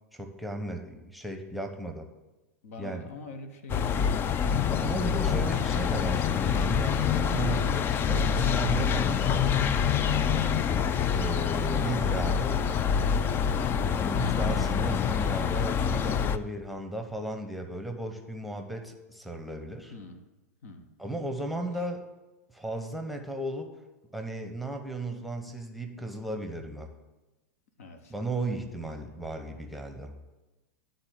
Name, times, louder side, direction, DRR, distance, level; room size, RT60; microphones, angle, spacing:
voice 1, 0.1-2.1 2.8-3.1 4.8-9.8 11.1-12.6 13.9-19.9 21.0-22.0 22.5-23.7 24.1-26.9 28.1-30.1, right 1 dB, ahead, 4 dB, 0.9 m, -35 dB
voice 2, 2.6-4.2 19.9-20.2 20.6-20.9 27.8-28.1, left 2 dB, 65° left, 7 dB, 1.0 m, -44 dB
sound 1, 3.7-16.4, left 7 dB, 25° left, 0.4 m, -26 dB
11.0 x 3.9 x 7.4 m, 1.1 s
hypercardioid pair, 100°, 8 cm